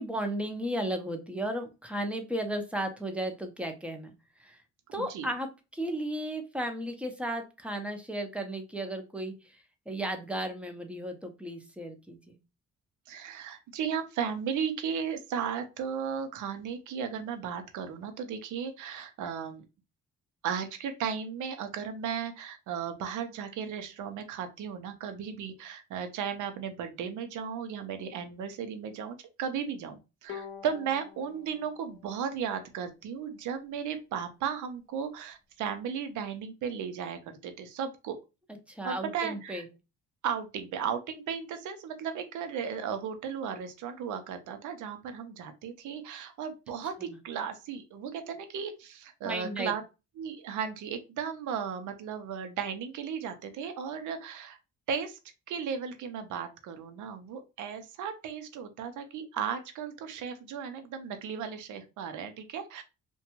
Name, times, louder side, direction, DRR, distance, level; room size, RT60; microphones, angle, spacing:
voice 1, 0.0-4.1 4.4-4.6 4.9-5.5 5.7-12.4 38.7-39.7 47.0-47.2 49.2-49.7, right 1 dB, 5° right, 5 dB, 0.6 m, -34 dB
voice 2, 4.9-5.3 13.1-19.6 20.4-38.2 38.8-39.6 40.2-49.8 50.2-54.6 54.9-55.2 55.5-62.8, right 7 dB, 75° right, 8 dB, 0.6 m, -35 dB
Bowed string instrument, 30.3-33.6, left 7 dB, 45° left, 0.5 m, -48 dB
2.6 x 2.2 x 2.8 m, 0.27 s
cardioid pair, 90°, 30 cm